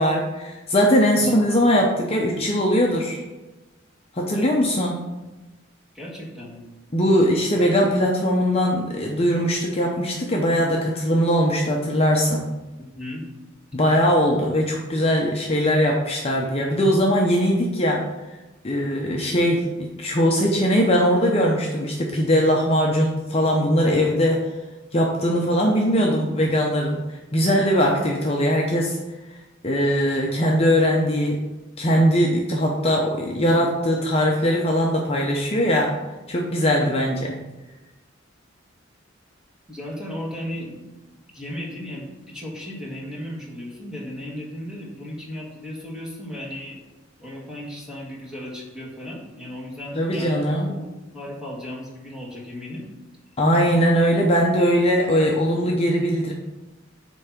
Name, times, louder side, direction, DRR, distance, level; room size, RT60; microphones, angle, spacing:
voice 1, 0.0-3.2 4.1-5.0 6.9-12.5 13.7-18.0 18.6-24.5 24.9-29.0 29.6-31.4 31.8-35.9 36.3-37.3 49.9-50.7 53.4-56.3, equal, 30° left, -1 dB, 0.7 m, -20 dB
voice 2, 1.2-1.7 5.9-6.6 12.9-13.2 39.7-40.8 41.3-46.8 47.2-50.9 51.1-52.9, left 1 dB, 5° right, -4 dB, 1.7 m, -35 dB
8.3 x 3.4 x 5.8 m, 1.1 s
head